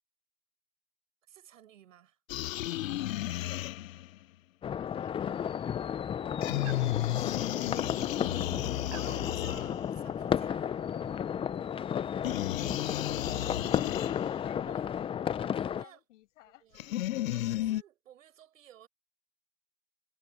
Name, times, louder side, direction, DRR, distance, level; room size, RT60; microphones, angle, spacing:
voice 1, 1.2-2.2 4.9-5.0 6.7-8.2 8.6-10.9 14.6-14.9 15.4-16.0 16.4-17.0 17.3-18.9, right 11 dB, 80° right, 7.9 m, -57 dB
sound 1, 2.3-4.2 6.4-10.1 12.2-14.5 16.8-17.8, left 14 dB, 85° left, 0.5 m, -33 dB
voice 2, 3.3-3.7 4.8-5.8 12.8-14.0 14.4-16.7, left 15 dB, 70° left, 7.2 m, -54 dB
sound 2, 4.6-15.8, left 8 dB, 15° left, 0.5 m, -33 dB
sound 3, 6.6-11.9, right 20 dB, 40° right, 3.5 m, -54 dB
hypercardioid pair, 110°, 39 cm